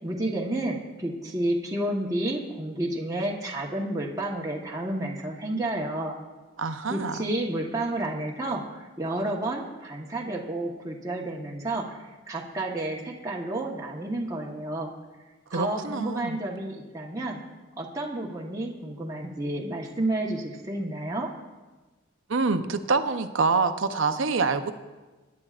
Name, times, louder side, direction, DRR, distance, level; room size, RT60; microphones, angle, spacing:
voice 1, 0.0-6.1 6.9-14.9 15.5-17.4 17.8-21.3, right 1 dB, 15° right, -2 dB, 1.2 m, -31 dB
voice 2, 6.6-7.2 15.5-16.4 22.3-24.7, right 4 dB, 75° right, 8 dB, 0.8 m, -26 dB
22.5 x 10.5 x 2.5 m, 1.2 s
head